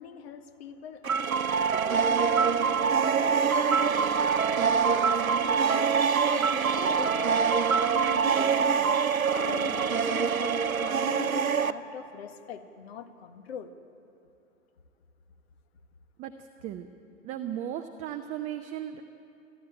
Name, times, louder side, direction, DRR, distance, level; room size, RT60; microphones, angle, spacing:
voice 1, 0.0-13.7, left 8 dB, 45° left, 8 dB, 1.6 m, -42 dB
sound 1, 1.0-11.7, right 6 dB, 80° right, 0.8 m, -25 dB
voice 2, 16.2-16.9 17.2-19.0, right 10 dB, 20° right, 7 dB, 0.6 m, -36 dB
30.0 x 12.0 x 9.1 m, 2.8 s
figure-of-eight pair, 105°, 41 cm